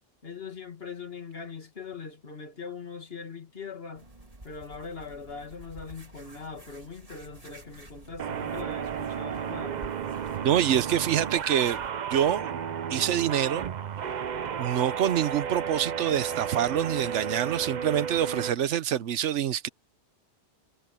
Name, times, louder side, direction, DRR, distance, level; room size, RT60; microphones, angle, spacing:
voice 1, 0.2-4.1 4.4-9.8 13.3-13.4 16.1-16.2, left 5 dB, 55° left, 2.3 m, -41 dB
sound 1, 3.9-11.9, right 1 dB, 30° right, 2.3 m, -50 dB
sound 2, 8.2-18.5, right 7 dB, 45° right, 0.7 m, -33 dB
voice 2, 10.4-11.8 12.1-12.6 12.9-13.7 14.6-19.7, right 10 dB, 80° right, 1.1 m, -26 dB
omnidirectional pair, 1.2 m